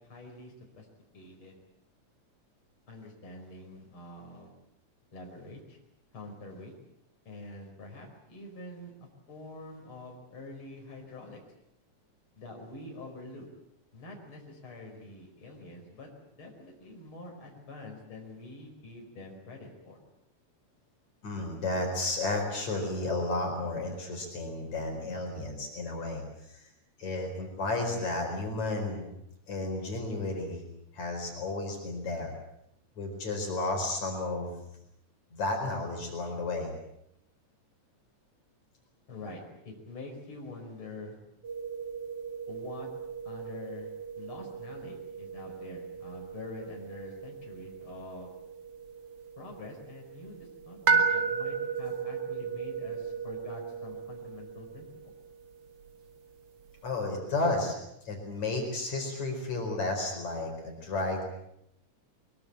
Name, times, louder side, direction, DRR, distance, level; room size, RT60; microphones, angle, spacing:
voice 1, 0.1-0.9 1.1-1.6 2.9-4.5 5.1-5.8 6.1-6.7 7.3-11.4 12.4-13.5 13.9-16.1 16.4-20.0 39.1-41.2 42.5-42.9 43.3-48.3 49.4-55.1, left 2 dB, 45° left, 1 dB, 5.8 m, -46 dB
voice 2, 21.2-26.2 26.5-26.6 27.0-29.1 29.5-30.6 30.9-32.3 33.0-34.6 35.3-36.7 56.8-57.7 58.0-61.3, left 2 dB, 70° left, 2 dB, 5.9 m, -32 dB
sound 1, 41.4-57.0, right 5 dB, 55° right, 2.7 m, -35 dB
23.0 x 22.5 x 8.6 m, 0.76 s
omnidirectional pair, 3.3 m